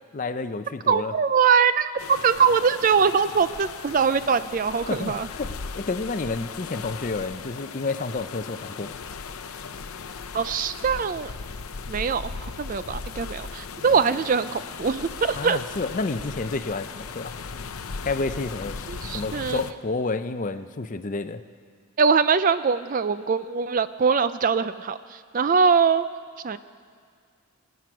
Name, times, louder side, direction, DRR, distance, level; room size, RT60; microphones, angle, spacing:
voice 1, 0.1-1.1 4.9-9.0 15.4-17.3 18.0-21.4, left 3 dB, 35° left, 11 dB, 0.5 m, -30 dB
voice 2, 0.9-5.3 10.3-11.3 11.9-15.6 18.9-19.6 22.0-25.0 25.3-26.0 26.4-26.6, right 6 dB, 35° right, 13 dB, 0.3 m, -22 dB
sound 1, 2.0-19.7, left 5 dB, 75° left, 0.7 m, -37 dB
22.0 x 9.3 x 6.1 m, 2.1 s
head